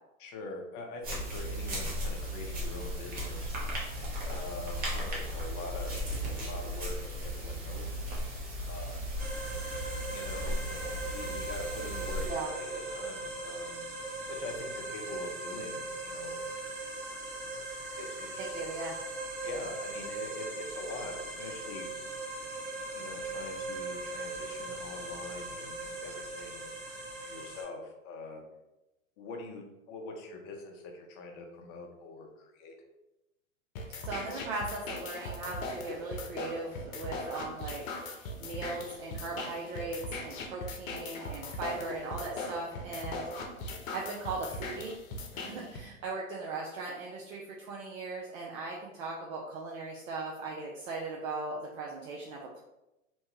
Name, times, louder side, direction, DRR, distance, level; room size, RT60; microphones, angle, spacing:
voice 1, 0.2-3.5 4.2-8.0 8.7-9.1 10.1-12.2 12.6-13.8 14.3-16.4 18.0-18.7 19.4-21.9 22.9-26.7 27.2-28.4 29.2-32.7 45.3-45.7, left 3 dB, 35° left, 2 dB, 0.5 m, -44 dB
sound 1, 1.0-12.3, equal, 20° right, 0.8 m, -36 dB
sound 2, 9.2-27.6, right 2 dB, 40° right, 1.3 m, -39 dB
voice 2, 18.4-18.9 34.0-43.2 43.9-45.0 45.3-52.4, right 3 dB, 65° right, -2 dB, 0.6 m, -38 dB
sound 3, 33.7-45.8, left 2 dB, 70° left, 0.7 m, -39 dB
3.0 x 2.1 x 3.0 m, 0.94 s
hypercardioid pair, 115°, 42 cm